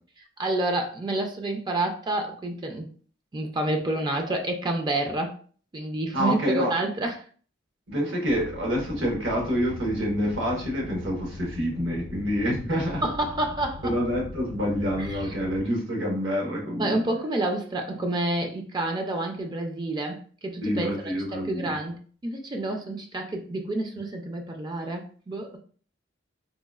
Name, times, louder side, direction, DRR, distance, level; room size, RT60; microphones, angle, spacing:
voice 1, 0.4-2.9 3.3-5.4 5.7-7.2 12.7-14.0 15.0-15.3 16.8-25.6, right 2 dB, 25° right, 4 dB, 0.4 m, -29 dB
voice 2, 6.1-6.7 7.9-13.0 13.8-17.0 20.6-21.7, equal, 80° right, -1 dB, 1.2 m, -27 dB
sound 1, 8.3-15.6, left 2 dB, 60° left, 0.5 m, -40 dB
3.9 x 2.3 x 2.3 m, 0.43 s
head